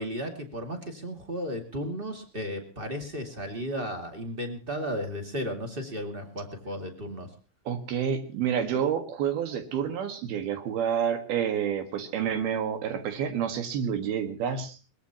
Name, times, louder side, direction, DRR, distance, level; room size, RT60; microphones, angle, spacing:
voice 1, 0.0-7.3, equal, 25° right, 4 dB, 1.2 m, -34 dB
voice 2, 7.7-14.8, right 8 dB, 65° right, 8 dB, 3.3 m, -29 dB
22.0 x 20.0 x 3.0 m, 0.34 s
omnidirectional pair, 5.1 m